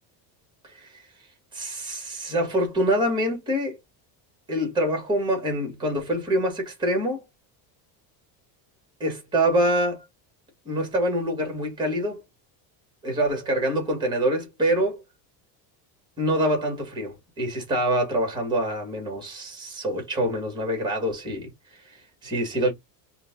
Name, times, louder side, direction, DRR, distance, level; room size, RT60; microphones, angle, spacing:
voice 1, 0.6-1.0 1.5-3.8 4.5-7.2 9.0-10.0 10.7-12.2 13.0-15.0 16.2-21.5 21.8-22.7, right 1 dB, 10° right, 1.9 m, -25 dB
3.7 x 2.5 x 3.7 m
cardioid pair, 175°, 44 cm